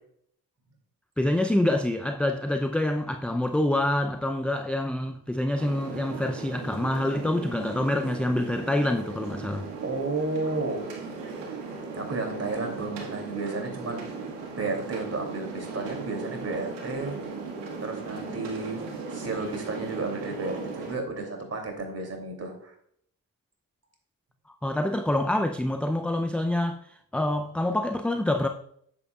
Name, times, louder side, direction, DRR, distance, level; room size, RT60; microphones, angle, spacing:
voice 1, 1.2-9.7 24.6-28.5, left 1 dB, 5° left, 0.5 m, -26 dB
sound 1, 5.6-21.0, right 4 dB, 70° right, 1.8 m, -37 dB
voice 2, 9.8-10.9 12.0-14.1 14.6-17.2 17.8-22.7, right 3 dB, 35° right, 2.9 m, -32 dB
9.3 x 7.9 x 2.4 m
hypercardioid pair, 50°, 44 cm